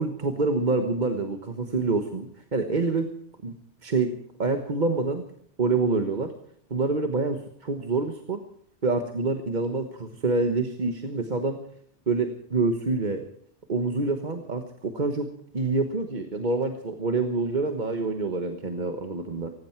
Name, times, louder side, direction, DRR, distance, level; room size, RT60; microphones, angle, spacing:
voice 1, 0.0-3.1 3.4-3.5 3.8-4.1 4.4-5.2 5.6-6.3 6.7-8.4 8.8-11.6 12.1-13.2 13.7-15.3 15.5-19.5, right 3 dB, 45° right, 6 dB, 1.4 m, -26 dB
18.0 x 16.0 x 4.6 m, 0.64 s
omnidirectional pair, 1.1 m